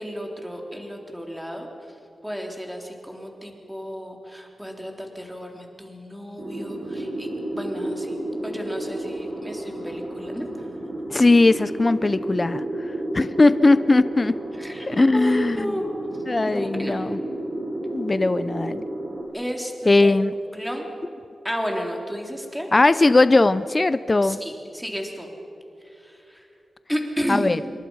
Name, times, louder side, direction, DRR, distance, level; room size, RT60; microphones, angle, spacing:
voice 1, 0.0-1.7 2.2-8.2 8.4-10.4 14.6-14.9 15.1-15.9 16.5-16.9 19.3-20.1 20.5-20.9 21.4-22.7 24.2-25.3 26.0-26.5 26.9-27.6, equal, ahead, 1 dB, 3.5 m, -32 dB
sound 1, 6.4-19.2, right 1 dB, 55° right, 7.1 m, -32 dB
voice 2, 11.1-12.6 13.1-14.3 14.9-15.7 16.3-17.2 17.9-18.8 19.9-20.3 22.7-24.4 27.3-27.6, left 2 dB, 25° left, 14 dB, 0.6 m, -19 dB
27.5 x 24.0 x 5.6 m, 2.9 s
wide cardioid pair, 110°, 0 cm